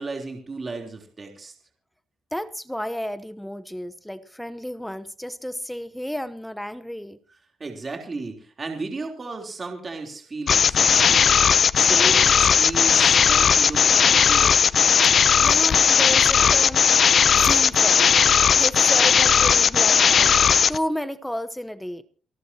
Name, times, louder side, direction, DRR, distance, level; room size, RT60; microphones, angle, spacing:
voice 1, 0.0-1.5 7.6-11.4 11.7-14.7, right 3 dB, 30° right, 3.5 m, -34 dB
voice 2, 2.3-7.2 15.2-16.9 17.3-18.1 18.5-22.0, equal, 5° left, 0.9 m, -32 dB
sound 1, 10.5-20.8, left 7 dB, 50° left, 0.6 m, -17 dB
28.5 x 11.5 x 2.9 m
cardioid pair, 105°, 0 cm